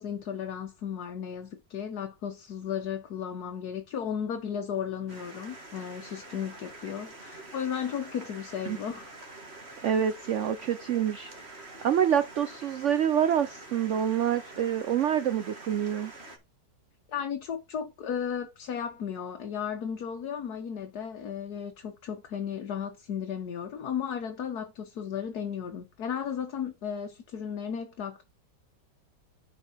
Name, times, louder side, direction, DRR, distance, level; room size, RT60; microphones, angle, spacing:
voice 1, 0.0-9.2 17.1-28.2, left 8 dB, 65° left, 1.5 m, -35 dB
sound 1, 5.1-16.4, right 2 dB, 35° right, 2.3 m, -46 dB
voice 2, 9.8-11.3 11.8-16.1, right 9 dB, 70° right, 0.7 m, -27 dB
10.0 x 4.6 x 4.4 m
omnidirectional pair, 1.9 m